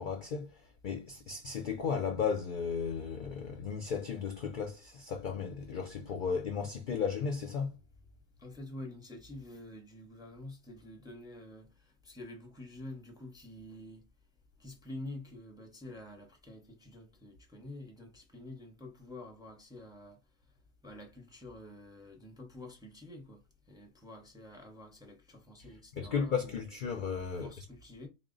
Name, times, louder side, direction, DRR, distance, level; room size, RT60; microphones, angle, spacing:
voice 1, 0.0-7.8 26.0-27.5, left 6 dB, 60° left, 0.5 m, -35 dB
voice 2, 8.4-14.1 14.6-20.2 20.8-23.4 23.7-26.7 27.3-28.1, left 1 dB, 5° right, 0.6 m, -48 dB
4.1 x 2.1 x 3.7 m
omnidirectional pair, 1.4 m